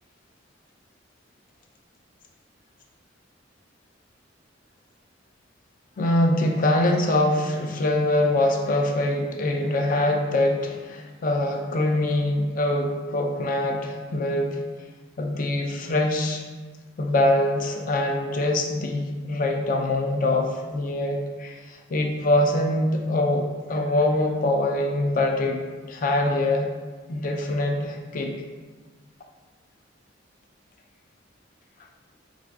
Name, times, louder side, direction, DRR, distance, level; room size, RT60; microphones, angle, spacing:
voice 1, 6.0-14.6 15.2-16.4 17.0-25.6 25.9-26.7 27.1-28.3, left 1 dB, 45° left, 2 dB, 0.4 m, -24 dB
4.9 x 2.5 x 2.3 m, 1.4 s
head